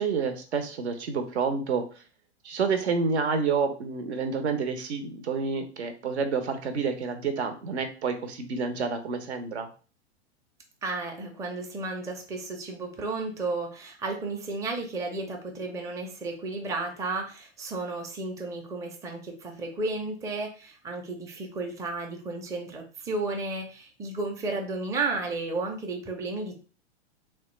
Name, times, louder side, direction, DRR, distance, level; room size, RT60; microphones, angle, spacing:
voice 1, 0.0-2.0 2.4-9.7, right 5 dB, 75° right, 7 dB, 0.7 m, -29 dB
voice 2, 10.8-26.5, right 3 dB, 10° right, 1 dB, 0.5 m, -33 dB
3.2 x 2.2 x 3.0 m, 0.36 s
hypercardioid pair, 105°, 33 cm